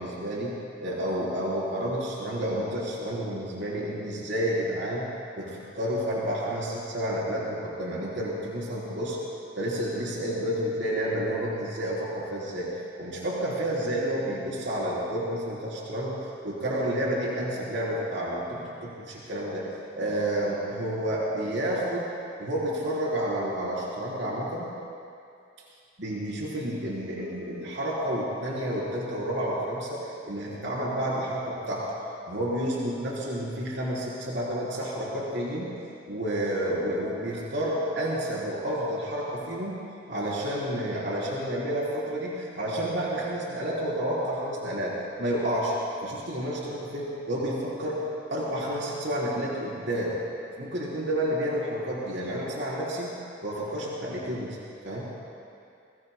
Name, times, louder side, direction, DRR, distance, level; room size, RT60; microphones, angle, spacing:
voice 1, 0.0-5.1 5.4-9.2 9.6-16.2 16.4-19.7 20.0-22.1 22.4-24.7 26.0-31.9 32.3-35.7 36.1-39.8 40.1-45.8 46.0-48.0 48.3-50.2 50.6-53.1 53.4-54.6 54.8-55.1, right 1 dB, 65° right, -6 dB, 3.7 m, -30 dB
28.0 x 23.0 x 2.2 m, 2.5 s
head